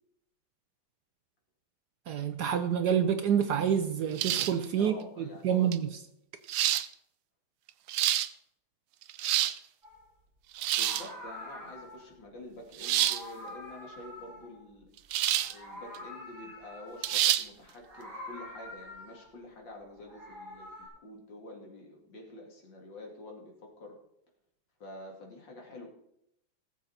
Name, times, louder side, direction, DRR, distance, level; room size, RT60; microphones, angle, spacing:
voice 1, 2.1-6.0, right 8 dB, 65° right, 1.1 m, -28 dB
sound 1, 4.2-4.7 5.7-5.8 6.5-6.9 7.7-8.3 9.0-9.6 10.6-11.1 12.8-13.2 15.1-15.5 15.9-16.0 17.0-17.5, right 13 dB, 80° right, 1.4 m, -27 dB
voice 2, 4.8-5.9 10.8-14.9 15.5-24.0 24.8-25.9, left 1 dB, 65° left, 3.1 m, -48 dB
Meow, 9.8-10.0 10.6-12.1 12.8-15.1 15.3-17.3 17.8-19.4 19.9-20.9, left 1 dB, 40° right, 6.2 m, -46 dB
18.5 x 7.5 x 4.3 m
omnidirectional pair, 2.2 m